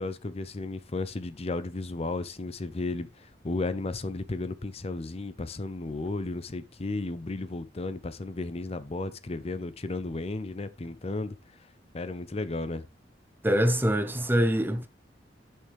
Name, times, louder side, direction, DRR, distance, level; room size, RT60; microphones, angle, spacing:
voice 1, 0.0-11.4 11.9-12.8, left 2 dB, 35° left, 0.6 m, -34 dB
voice 2, 13.4-14.9, equal, 10° right, 0.7 m, -24 dB
9.8 x 5.7 x 3.5 m
head